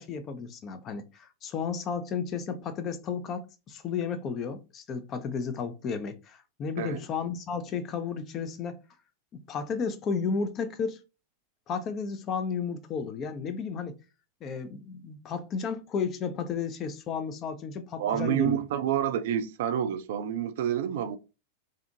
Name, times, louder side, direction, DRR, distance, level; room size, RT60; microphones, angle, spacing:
voice 1, 0.0-8.8 9.3-11.0 11.7-14.0 14.4-18.6, left 5 dB, 30° left, 0.4 m, -33 dB
voice 2, 18.0-21.2, right 10 dB, 55° right, 0.3 m, -28 dB
2.5 x 2.4 x 2.5 m
figure-of-eight pair, 90°, 0 cm